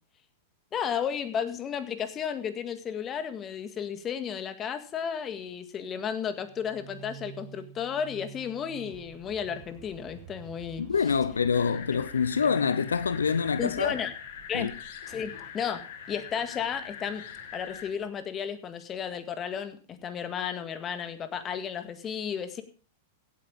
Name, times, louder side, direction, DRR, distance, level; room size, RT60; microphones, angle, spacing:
voice 1, 0.7-10.9 13.6-14.1 14.5-14.7 15.1-15.8 16.1-17.2 17.5-22.6, left 8 dB, 30° left, 1.8 m, -33 dB
sound 1, 6.3-18.2, right 11 dB, 45° right, 2.2 m, -50 dB
voice 2, 10.8-13.9 14.5-14.7, left 6 dB, 80° left, 0.6 m, -26 dB
sound 2, 11.5-17.9, left 8 dB, 60° left, 2.1 m, -43 dB
16.0 x 8.5 x 5.2 m
hypercardioid pair, 100°, 0 cm